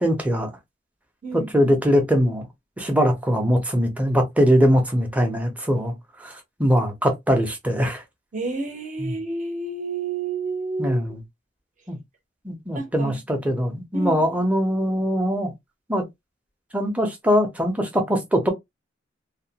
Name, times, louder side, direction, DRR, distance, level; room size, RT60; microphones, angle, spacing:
voice 1, 0.0-0.5 1.3-2.5 2.8-8.0 9.0-9.2 10.8-11.2 11.9-12.0 12.4-15.5 15.9-16.0 16.7-18.5, equal, 10° right, 0.6 m, -22 dB
voice 2, 8.3-11.0 12.7-13.1 13.9-14.1, right 3 dB, 40° right, 0.8 m, -29 dB
2.4 x 2.2 x 2.8 m
head